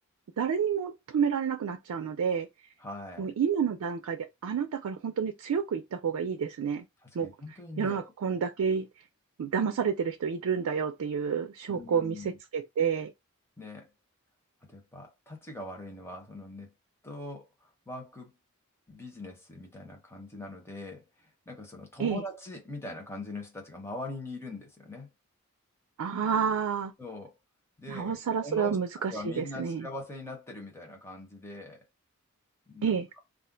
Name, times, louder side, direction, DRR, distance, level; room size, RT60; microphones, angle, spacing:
voice 1, 0.4-2.5 3.2-6.8 7.1-7.3 7.8-8.9 9.4-12.2 12.5-13.1 22.0-22.2 26.0-26.9 27.9-29.9 32.8-33.1, right 7 dB, 90° right, 0.4 m, -29 dB
voice 2, 2.8-3.3 7.2-8.1 11.7-12.4 13.6-13.9 14.7-16.7 17.0-18.3 18.9-25.1 27.0-27.4 27.8-31.9 32.7-33.0, left 2 dB, 10° left, 0.8 m, -42 dB
2.4 x 2.1 x 3.7 m
head